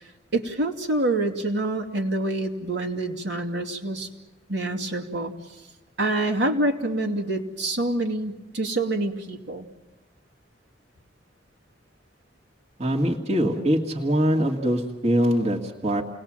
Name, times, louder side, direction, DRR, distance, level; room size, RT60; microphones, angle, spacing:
voice 1, 0.3-4.1 4.5-5.3 6.0-9.6, right 2 dB, 65° right, 2 dB, 2.7 m, -26 dB
voice 2, 12.8-16.0, equal, 35° right, 0 dB, 2.1 m, -23 dB
29.5 x 20.0 x 7.6 m, 1.1 s
head